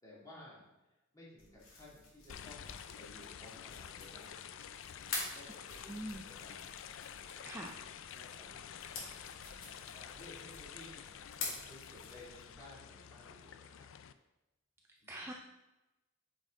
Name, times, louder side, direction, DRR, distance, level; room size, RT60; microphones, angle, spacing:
voice 1, 0.0-0.7 1.1-6.7 7.3-7.4 8.1-11.0 11.7-13.9 15.0-15.3, left 1 dB, 15° left, -7 dB, 2.7 m, -57 dB
sound 1, 1.4-12.6, left 3 dB, 85° left, 2.2 m, -48 dB
sound 2, 2.3-14.1, left 8 dB, 65° left, 0.4 m, -49 dB
voice 2, 5.9-6.2 7.4-7.8 15.1-15.3, right 1 dB, 10° right, 0 dB, 0.5 m, -43 dB
9.0 x 5.3 x 3.8 m, 1.0 s
head